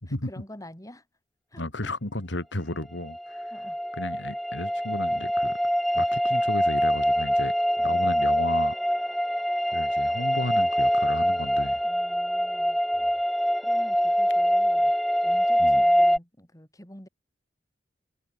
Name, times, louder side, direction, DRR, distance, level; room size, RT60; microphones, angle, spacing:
voice 1, 0.1-1.1 1.5-1.9 3.5-3.8 11.8-12.8 13.6-14.9 15.2-17.1, left 1 dB, 20° left, 7.3 m, -47 dB
voice 2, 1.6-3.5 4.0-5.6 5.9-8.7 9.7-11.8 13.0-13.1 15.6-15.8, left 1 dB, 80° left, 2.9 m, -34 dB
sound 1, 3.0-16.2, equal, ahead, 0.6 m, -24 dB
head